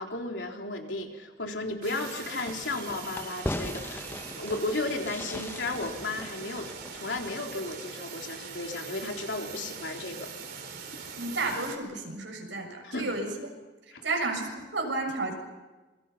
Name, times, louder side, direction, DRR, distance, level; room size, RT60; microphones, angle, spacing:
voice 1, 0.0-10.3 10.9-11.0 12.8-13.1 13.9-14.1, left 2 dB, 80° left, 2 dB, 3.8 m, -34 dB
sound 1, 1.8-11.8, right 5 dB, 60° right, 4.2 m, -42 dB
Fireworks, 2.5-7.7, left 1 dB, 15° left, 0.9 m, -39 dB
voice 2, 11.2-13.3 14.0-15.3, right 3 dB, 85° right, 3 dB, 6.9 m, -32 dB
27.5 x 23.5 x 5.6 m, 1.2 s
head